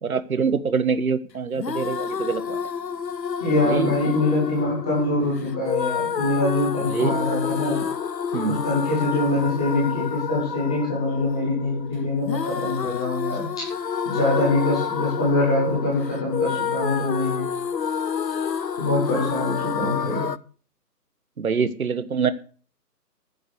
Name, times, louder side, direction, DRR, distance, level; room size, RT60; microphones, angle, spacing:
voice 1, 0.0-2.6 3.6-3.9 6.9-7.2 8.3-8.6 19.7-20.3 21.4-22.3, right 5 dB, 60° right, 13 dB, 1.4 m, -25 dB
sound 1, 1.6-20.4, left 7 dB, 85° left, 0.9 m, -29 dB
voice 2, 3.4-7.8 8.5-13.5 14.0-17.5 18.8-20.3, left 2 dB, 5° left, -5 dB, 0.8 m, -24 dB
14.5 x 7.9 x 6.6 m, 0.43 s
figure-of-eight pair, 150°, 49 cm